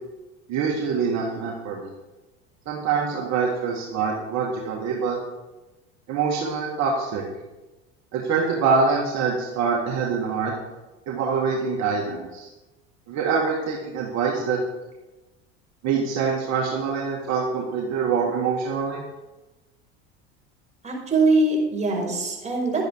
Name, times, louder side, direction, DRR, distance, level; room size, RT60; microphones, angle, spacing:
voice 1, 0.5-1.9 2.7-5.2 6.1-7.2 8.1-10.5 11.1-12.5 13.1-14.6 15.8-19.0, right 5 dB, 55° right, -2 dB, 2.0 m, -25 dB
voice 2, 20.8-22.9, right 2 dB, 20° right, -2 dB, 5.0 m, -22 dB
11.5 x 10.5 x 4.7 m, 1.1 s
hypercardioid pair, 85°, 33 cm